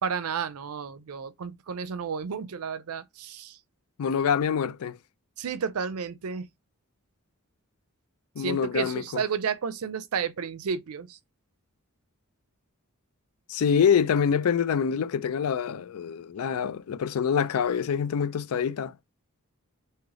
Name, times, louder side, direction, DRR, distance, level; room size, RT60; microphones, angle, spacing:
voice 1, 0.0-3.6 5.4-6.5 8.4-11.2, right 6 dB, 90° right, 0.5 m, -32 dB
voice 2, 4.0-5.0 8.4-9.2 13.5-18.9, left 7 dB, 85° left, 0.4 m, -25 dB
3.3 x 2.8 x 3.6 m
head